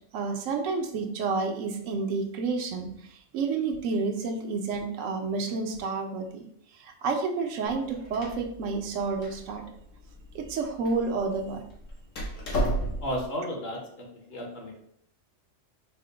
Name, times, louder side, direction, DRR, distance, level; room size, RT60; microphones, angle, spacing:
voice 1, 0.1-6.4 6.7-9.6 10.3-11.6, right 4 dB, 90° right, 4 dB, 1.0 m, -30 dB
Door, 7.7-13.3, right 1 dB, 80° left, 1.4 m, -34 dB
voice 2, 13.0-14.8, equal, 55° left, 0 dB, 1.1 m, -34 dB
4.4 x 2.1 x 3.8 m, 0.70 s
omnidirectional pair, 1.3 m